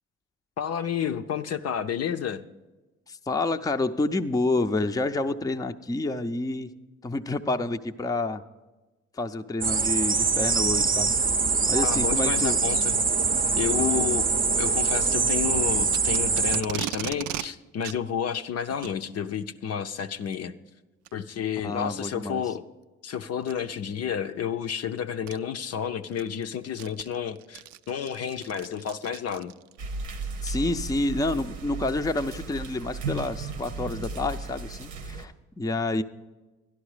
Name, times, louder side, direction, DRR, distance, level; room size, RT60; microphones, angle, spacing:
voice 1, 0.6-2.4 11.8-13.0 13.6-14.3 14.5-20.5 21.1-22.6 23.0-29.5, left 8 dB, 55° left, 8 dB, 0.6 m, -31 dB
voice 2, 3.1-6.7 7.0-8.4 9.2-11.1 11.7-12.6 13.8-14.1 21.6-22.4 30.4-36.0, left 2 dB, 10° left, 7 dB, 0.5 m, -28 dB
sound 1, 9.6-16.6, right 4 dB, 30° right, 0.6 m, -24 dB
Packing tape duct tape, 15.9-17.5 17.8-18.0 18.7-19.0 20.1-20.3 21.0-21.1 21.8-21.9 23.4-23.7 24.8-24.9 25.3-25.4 25.9-29.8, right 12 dB, 70° right, 0.4 m, -37 dB
sound 2, 29.8-35.2, right 3 dB, 90° right, 0.9 m, -35 dB
11.5 x 11.5 x 4.9 m, 1.2 s
supercardioid pair, 55°, 31 cm